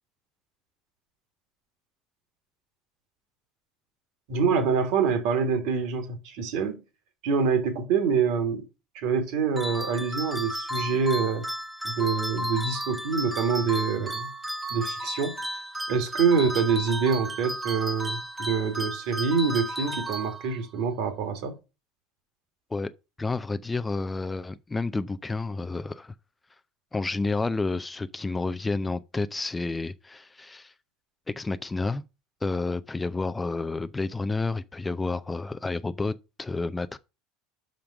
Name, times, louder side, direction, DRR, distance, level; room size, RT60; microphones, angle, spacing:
voice 1, 4.3-6.8 7.2-8.7 9.0-11.4 11.8-14.3 14.7-15.4 15.9-21.6, right 5 dB, 60° right, 1.9 m, -26 dB
sound 1, 9.6-20.8, equal, 10° right, 1.1 m, -33 dB
voice 2, 23.2-26.1 26.9-30.7 31.3-32.0 32.4-37.0, left 3 dB, 15° left, 0.5 m, -30 dB
5.7 x 5.2 x 6.3 m
figure-of-eight pair, 75°, 0 cm